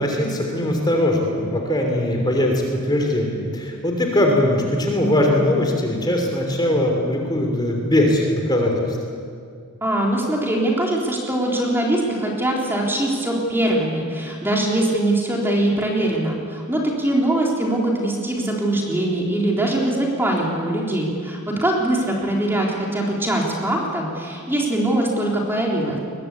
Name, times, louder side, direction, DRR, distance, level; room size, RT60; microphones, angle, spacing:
voice 1, 0.0-9.0, left 1 dB, 20° left, 1 dB, 3.2 m, -20 dB
voice 2, 9.8-26.0, right 1 dB, 10° right, -2 dB, 3.5 m, -22 dB
22.0 x 22.0 x 8.4 m, 2.2 s
head